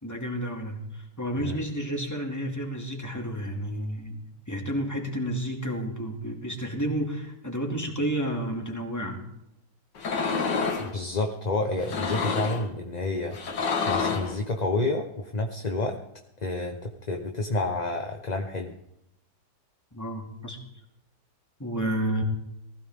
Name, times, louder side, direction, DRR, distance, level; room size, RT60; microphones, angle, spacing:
voice 1, 0.0-4.2 4.5-9.3 19.9-20.6 21.6-22.2, right 1 dB, 10° left, 1 dB, 2.5 m, -31 dB
sound 1, 10.0-10.9 11.8-12.7 13.3-14.4, left 5 dB, 85° left, 2.3 m, -28 dB
voice 2, 10.8-13.4 13.9-16.0 16.4-18.7, left 2 dB, 30° left, 3 dB, 1.0 m, -29 dB
19.5 x 16.0 x 3.7 m, 0.82 s
omnidirectional pair, 1.8 m